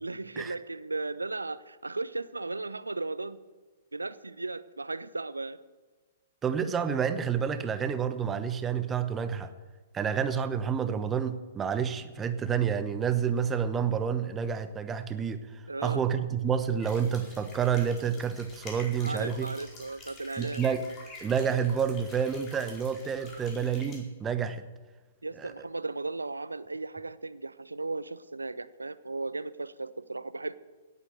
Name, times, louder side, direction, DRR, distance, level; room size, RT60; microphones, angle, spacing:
voice 1, 0.0-3.4 3.9-5.6 15.7-16.0 19.0-20.6 25.2-30.5, right 3 dB, 80° right, 16 dB, 0.7 m, -36 dB
voice 2, 6.4-9.5 9.9-15.4 15.8-19.5 20.4-20.8 21.2-24.6 25.4-25.5, right 7 dB, 15° right, 11 dB, 1.0 m, -29 dB
sound 1, 16.8-24.0, left 2 dB, 25° left, 4.5 m, -48 dB
17.5 x 8.5 x 7.9 m, 1.3 s
figure-of-eight pair, 115°, 0 cm